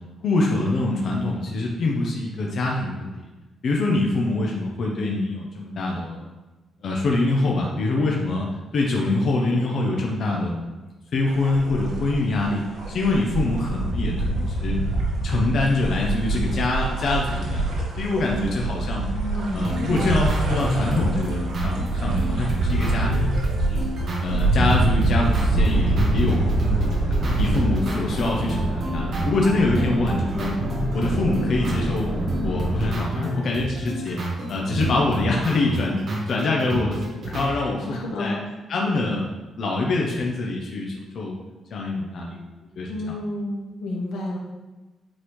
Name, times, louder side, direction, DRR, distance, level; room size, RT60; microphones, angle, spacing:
voice 1, 0.2-3.1 3.6-6.2 6.8-8.5 8.7-10.7 11.1-14.8 15.2-19.1 19.5-23.8 24.2-26.5 27.3-30.6 30.9-32.1 32.4-34.2 34.5-36.0 36.3-38.4 38.7-39.3 39.6-41.4 41.7-42.4 42.8-43.2, left 2 dB, 45° left, -1 dB, 0.7 m, -25 dB
sound 1, 11.3-27.6, right 2 dB, 80° right, 1.4 m, -25 dB
voice 2, 19.1-20.2 37.5-38.4 42.9-44.4, left 1 dB, 80° left, -1 dB, 1.3 m, -31 dB
sound 2, 19.6-37.5, right 1 dB, 45° right, 1.2 m, -29 dB
Boat Water vehicle, 25.3-32.9, equal, 20° right, 1.7 m, -30 dB
8.5 x 4.0 x 3.2 m, 1.2 s
cardioid pair, 175°, 0 cm